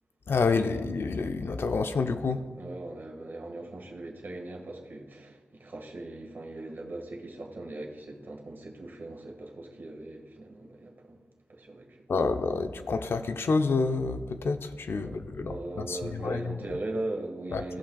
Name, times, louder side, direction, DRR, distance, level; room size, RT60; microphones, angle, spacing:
voice 1, 0.3-2.4 12.1-16.6 17.5-17.8, left 4 dB, 65° left, 8 dB, 0.5 m, -28 dB
voice 2, 2.5-11.2 11.5-12.0 15.0-17.8, right 2 dB, 55° right, 0 dB, 1.7 m, -39 dB
16.5 x 5.7 x 2.3 m, 1.5 s
cardioid pair, 70°, 4 cm